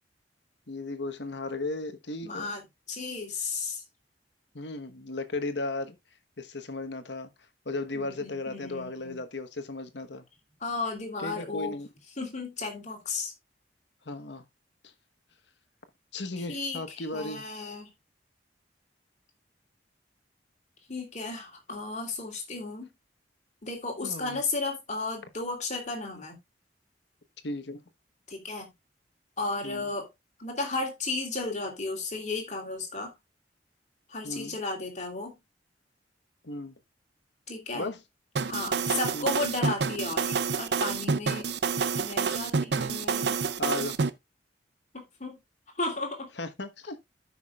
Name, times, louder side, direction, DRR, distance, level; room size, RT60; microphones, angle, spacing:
voice 1, 0.7-2.5 4.5-6.0 6.4-7.3 7.6-10.3 11.2-11.9 14.0-14.4 14.8-14.9 16.1-17.4 24.0-24.4 27.4-27.8 29.6-29.9 34.2-34.6 36.4-36.8 37.7-38.0 39.1-39.3 43.6-43.9 46.4-47.1, left 2 dB, 70° left, 1.2 m, -35 dB
voice 2, 2.2-3.8 7.9-9.2 10.6-11.8 12.2-13.3 16.5-17.9 20.9-22.9 23.6-26.4 28.3-28.7 29.4-30.1 30.4-33.1 34.1-35.4 37.5-37.9 38.5-41.5 42.0-43.4 44.9-45.4 45.8-46.3, left 3 dB, 40° left, 3.0 m, -34 dB
sound 1, 38.4-44.1, right 5 dB, 65° right, 0.6 m, -28 dB
14.0 x 6.0 x 2.4 m
head